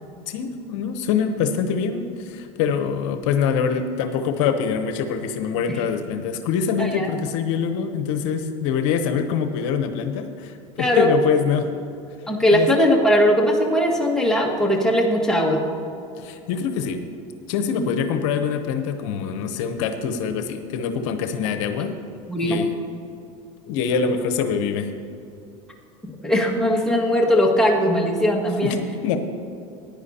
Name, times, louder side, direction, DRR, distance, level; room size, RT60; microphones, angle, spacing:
voice 1, 0.3-11.7 12.5-12.7 16.2-17.0 17.5-21.9 22.4-22.7 23.7-24.9 28.6-29.2, left 6 dB, 75° left, 7 dB, 0.8 m, -24 dB
voice 2, 10.8-11.1 12.3-15.7 22.3-22.6 26.0-28.8, equal, 5° left, -1 dB, 1.8 m, -19 dB
15.5 x 10.0 x 2.8 m, 2.7 s
supercardioid pair, 105°, 16 cm